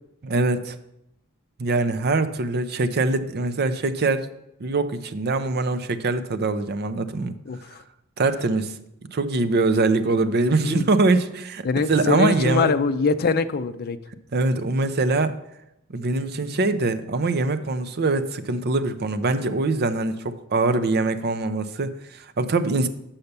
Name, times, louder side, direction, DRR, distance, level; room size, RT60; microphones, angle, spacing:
voice 1, 0.2-0.8 1.6-4.3 4.6-7.3 8.2-8.7 9.1-12.7 14.3-15.4 15.9-22.9, right 3 dB, 50° right, 11 dB, 0.6 m, -23 dB
voice 2, 7.5-7.8 10.6-10.8 11.6-14.0, left 4 dB, 45° left, 10 dB, 0.5 m, -23 dB
6.8 x 5.7 x 6.7 m, 0.85 s
head